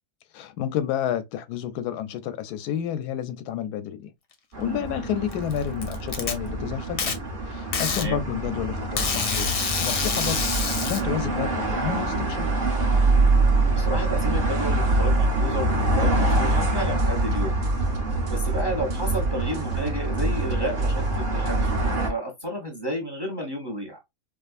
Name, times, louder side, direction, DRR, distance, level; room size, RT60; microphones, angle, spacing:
voice 1, 0.3-4.1 4.6-12.5, left 10 dB, 90° left, 1.1 m, -30 dB
sound 1, 4.5-22.1, right 2 dB, 40° right, 1.1 m, -25 dB
Packing tape duct tape, 5.3-6.3 7.0-7.2 7.7-8.1 9.0-11.0, left 6 dB, 55° left, 0.7 m, -27 dB
voice 2, 13.7-17.6 18.3-24.0, right 1 dB, 20° right, 0.8 m, -31 dB
sound 2, 15.8-21.9, right 3 dB, 75° right, 1.3 m, -29 dB
4.9 x 2.2 x 2.4 m
omnidirectional pair, 1.6 m